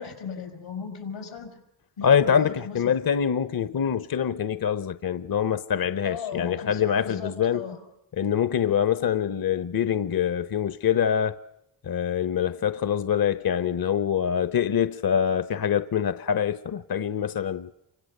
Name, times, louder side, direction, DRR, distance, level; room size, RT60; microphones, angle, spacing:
voice 1, 0.0-1.6 2.0-2.9 6.0-7.8, left 6 dB, 90° left, 5.4 m, -37 dB
voice 2, 2.0-7.7 8.2-11.3 11.8-17.7, left 8 dB, 50° left, 1.0 m, -25 dB
28.5 x 25.0 x 6.8 m
supercardioid pair, 45°, 48 cm